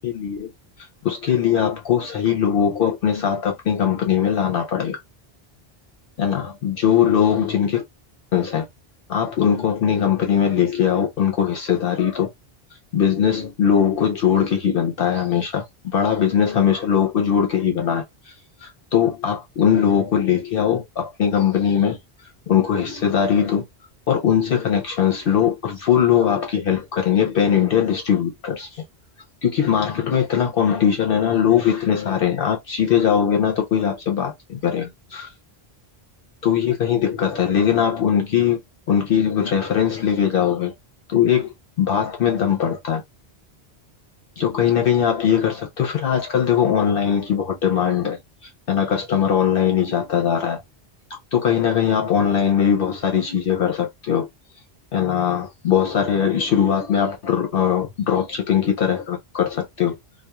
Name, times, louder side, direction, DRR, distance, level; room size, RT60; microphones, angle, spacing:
voice 1, 0.0-0.5 0.8-5.0 6.2-7.8 8.3-8.7 9.1-12.3 12.9-18.3 18.6-22.0 22.5-23.6 24.1-28.8 29.4-35.3 36.4-38.6 38.9-40.7 41.1-43.0 44.4-50.6 51.3-54.3 54.9-60.0, left 8 dB, 65° left, 0.7 m, -20 dB
2.3 x 2.2 x 2.8 m
omnidirectional pair, 1.1 m